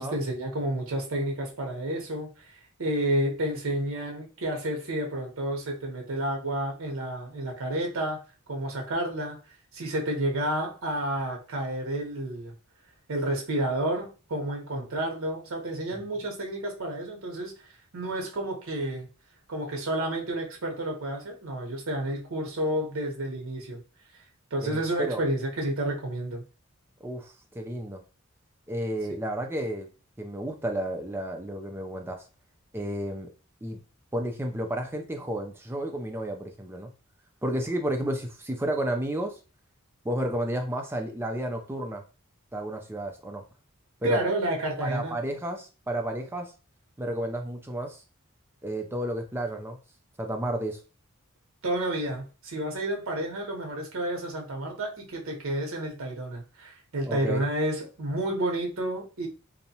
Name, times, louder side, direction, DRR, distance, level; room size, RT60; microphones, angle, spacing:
voice 1, 0.0-8.2 8.5-9.4 9.7-12.5 13.1-17.5 17.9-19.1 19.5-23.8 24.5-26.5 44.0-45.2 51.6-59.3, right 1 dB, 70° right, 1 dB, 0.7 m, -30 dB
voice 2, 24.6-25.2 27.0-28.0 28.7-29.9 30.2-32.2 32.7-33.3 33.6-33.8 34.1-36.9 37.4-39.3 40.0-42.0 42.5-43.4 44.0-44.2 44.8-46.5 47.0-48.0 48.6-49.8 50.2-50.8 57.1-57.4, right 1 dB, 10° right, 4 dB, 0.3 m, -31 dB
2.7 x 2.1 x 2.7 m, 0.34 s
head